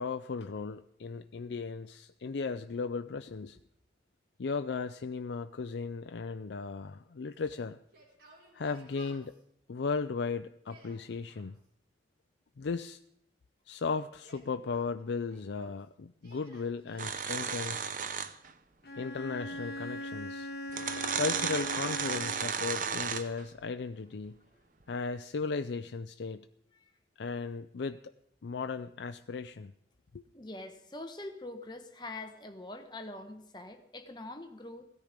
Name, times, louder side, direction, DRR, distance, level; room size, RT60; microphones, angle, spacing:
voice 1, 0.0-3.6 4.4-7.8 8.5-9.3 9.7-11.6 12.6-13.0 13.7-17.9 19.0-20.5 21.1-24.4 24.9-26.5 27.2-28.0 28.4-29.7 30.1-30.2, left 4 dB, 80° left, 9 dB, 0.5 m, -36 dB
Yell, 7.9-9.4 10.5-11.5 14.1-15.8 16.2-17.0, right 2 dB, 75° right, 4.8 m, -58 dB
sound 1, 17.0-18.5 19.8-19.9 20.7-23.4, right 6 dB, 45° right, 0.7 m, -34 dB
Bowed string instrument, 18.8-22.7, left 1 dB, 60° left, 1.2 m, -40 dB
voice 2, 30.3-34.9, left 2 dB, 25° left, 6 dB, 1.2 m, -44 dB
16.5 x 13.5 x 5.1 m, 0.73 s
head